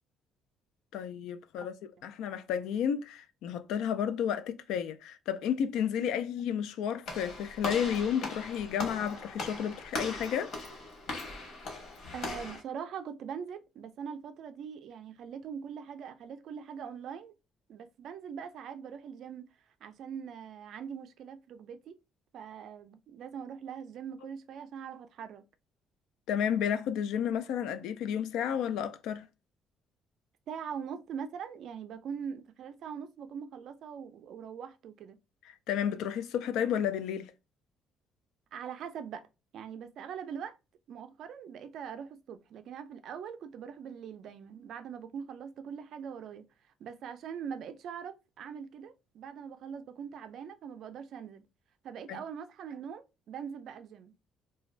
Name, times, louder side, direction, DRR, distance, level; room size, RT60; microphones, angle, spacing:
voice 1, 0.9-1.8 2.0-10.5 26.3-29.3 35.7-37.3 52.1-52.2, left 8 dB, 80° left, 0.3 m, -32 dB
Walk footsteps / Slam, 7.1-12.6, left 2 dB, 55° left, 1.1 m, -39 dB
voice 2, 12.1-17.3 17.7-19.5 19.8-22.0 22.3-25.4 30.5-35.2 38.5-39.2 39.5-40.6 40.9-46.5 46.8-51.5 51.8-54.1, right 7 dB, 55° right, 0.4 m, -42 dB
2.5 x 2.2 x 3.1 m
cardioid pair, 170°, 0 cm